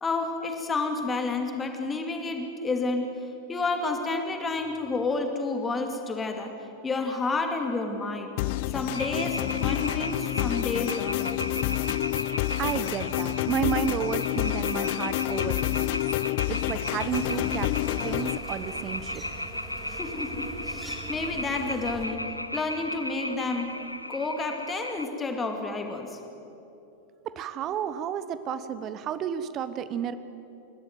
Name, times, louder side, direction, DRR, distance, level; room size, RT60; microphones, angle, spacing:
voice 1, 0.0-6.5 6.8-8.3 8.7-11.3 19.9-22.3 22.5-23.8 24.1-26.2 28.5-28.6, left 3 dB, 15° left, 4 dB, 2.5 m, -30 dB
sound 1, 8.4-18.4, left 18 dB, 50° left, 0.4 m, -28 dB
sound 2, 8.9-25.1, left 1 dB, 85° left, 0.7 m, -36 dB
voice 2, 12.6-16.1 16.5-17.7 18.0-19.2 27.2-30.2, right 9 dB, 35° right, 13 dB, 1.1 m, -32 dB
sound 3, 17.0-22.1, right 2 dB, 5° right, 4.7 m, -42 dB
29.5 x 13.0 x 7.9 m, 2.9 s
figure-of-eight pair, 90°, 0 cm